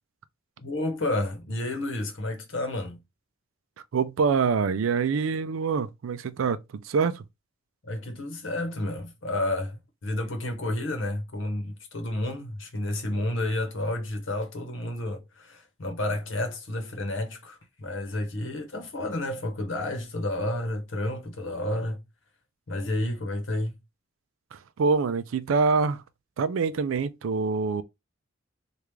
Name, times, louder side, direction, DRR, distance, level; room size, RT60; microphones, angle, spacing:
voice 1, 0.6-3.0 7.8-22.0 22.7-23.8, left 1 dB, 70° left, 0.9 m, -31 dB
voice 2, 3.9-7.3 24.5-26.0 26.4-27.8, right 5 dB, 85° right, 0.4 m, -25 dB
3.5 x 2.4 x 3.1 m
head